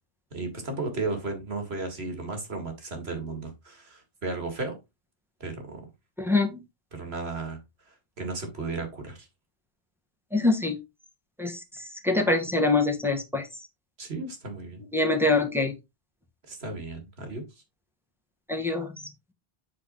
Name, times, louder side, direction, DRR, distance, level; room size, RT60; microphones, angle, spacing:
voice 1, 0.3-4.8 5.4-5.8 6.9-7.6 8.2-9.3 14.0-14.8 16.5-17.4, right 3 dB, 60° right, 2.4 m, -34 dB
voice 2, 6.2-6.6 10.3-10.7 11.4-11.6 12.0-13.4 14.9-15.7 18.5-18.9, left 2 dB, ahead, 1.6 m, -24 dB
8.0 x 4.6 x 4.1 m
omnidirectional pair, 1.2 m